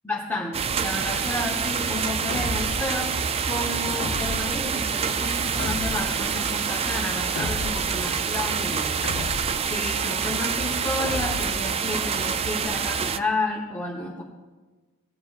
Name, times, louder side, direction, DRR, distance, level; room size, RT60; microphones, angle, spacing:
voice 1, 0.0-9.3 9.7-14.2, left 2 dB, 10° left, -4 dB, 0.9 m, -31 dB
sound 1, 0.5-13.2, right 6 dB, 25° right, 0.3 m, -27 dB
Frying (food), 0.7-12.7, right 3 dB, 85° right, 1.9 m, -42 dB
sound 2, 2.3-3.0 4.0-4.6 5.6-6.3 7.4-8.0 9.0-9.7 11.0-11.7, left 4 dB, 45° left, 0.5 m, -34 dB
17.5 x 10.5 x 2.4 m, 1.3 s
head